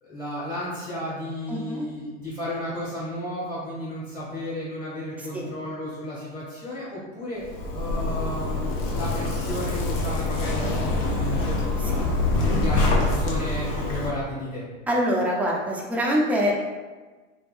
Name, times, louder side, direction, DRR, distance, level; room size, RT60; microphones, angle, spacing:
voice 1, 0.0-7.4 7.7-11.7 12.5-14.7, left 1 dB, 20° left, -9 dB, 1.5 m, -33 dB
voice 2, 1.5-1.9 5.2-5.5 11.9-12.1 14.9-16.6, equal, 5° right, -3 dB, 0.4 m, -25 dB
Zipper (clothing), 7.4-14.1, left 2 dB, 45° left, 0.8 m, -25 dB
3.4 x 2.8 x 2.4 m, 1.3 s
hypercardioid pair, 85°, 39 cm